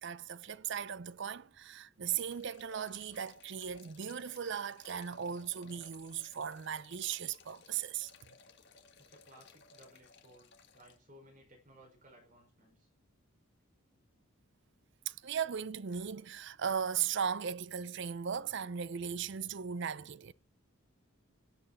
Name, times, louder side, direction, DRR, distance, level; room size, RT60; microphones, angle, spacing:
voice 1, 0.0-8.1 15.1-20.3, right 7 dB, 55° right, 0.5 m, -37 dB
sound 1, 2.0-11.0, left 4 dB, 55° left, 1.6 m, -60 dB
voice 2, 9.0-12.9, equal, 40° right, 4.8 m, -60 dB
18.5 x 8.0 x 4.2 m
head